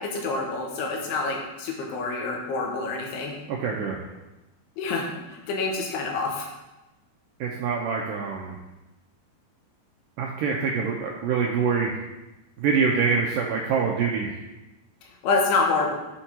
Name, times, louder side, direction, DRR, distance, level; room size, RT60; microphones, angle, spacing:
voice 1, 0.0-3.3 4.8-6.5 15.2-15.9, left 3 dB, 90° left, 1 dB, 3.0 m, -27 dB
voice 2, 3.5-4.0 7.4-8.5 10.2-11.9 12.6-14.3, right 5 dB, 90° right, -1 dB, 1.9 m, -25 dB
7.7 x 4.5 x 4.4 m, 1.0 s
omnidirectional pair, 4.6 m